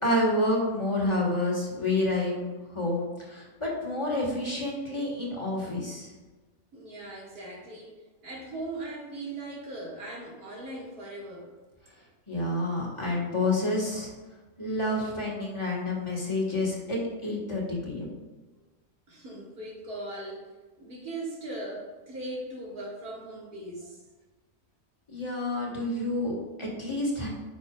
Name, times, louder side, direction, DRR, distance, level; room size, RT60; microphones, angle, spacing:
voice 1, 0.0-6.1 12.3-14.1 14.6-18.1 25.1-27.3, left 1 dB, 20° left, -4 dB, 1.5 m, -29 dB
voice 2, 6.7-7.9 8.2-11.5 19.1-20.5 20.8-24.0, right 2 dB, 80° right, -4 dB, 2.5 m, -39 dB
9.7 x 5.8 x 2.4 m, 1.2 s
omnidirectional pair, 1.6 m